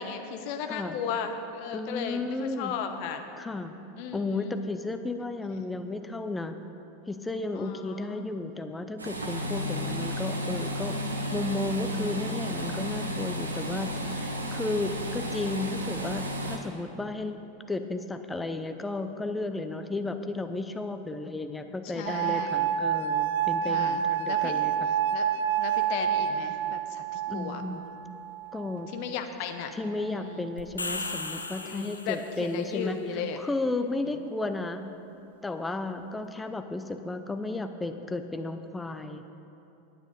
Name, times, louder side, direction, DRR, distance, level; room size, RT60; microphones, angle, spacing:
voice 1, 0.0-3.2 4.0-4.6 7.5-8.3 21.9-22.6 23.6-24.0 24.3-24.5 25.1-25.3 25.6-27.6 28.9-29.7 30.1-30.5 31.6-33.4, left 7 dB, 50° left, 7 dB, 0.8 m, -36 dB
voice 2, 1.7-2.7 3.4-3.7 4.1-6.6 7.1-17.4 17.7-24.7 27.3-27.8 28.5-28.9 29.7-33.0 33.4-34.9 35.4-39.2, left 2 dB, 10° left, 8 dB, 0.6 m, -33 dB
sound 1, 9.0-16.6, equal, 80° right, 1.0 m, -33 dB
sound 2, 22.1-29.0 29.8-30.4, right 9 dB, 60° right, 0.3 m, -29 dB
sound 3, 30.6-32.5, left 3 dB, 80° left, 0.6 m, -36 dB
10.0 x 9.0 x 5.2 m, 2.9 s
figure-of-eight pair, 85°, 0 cm